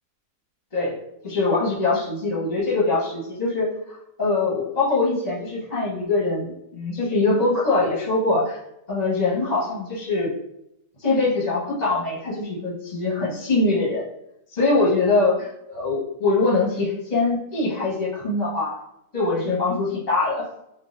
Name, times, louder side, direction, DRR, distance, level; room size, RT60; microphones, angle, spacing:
voice 1, 1.2-8.6 8.9-10.3 11.0-14.1 14.5-18.8 19.1-20.5, left 3 dB, 30° left, -7 dB, 0.9 m, -23 dB
5.5 x 2.4 x 2.5 m, 0.82 s
omnidirectional pair, 1.8 m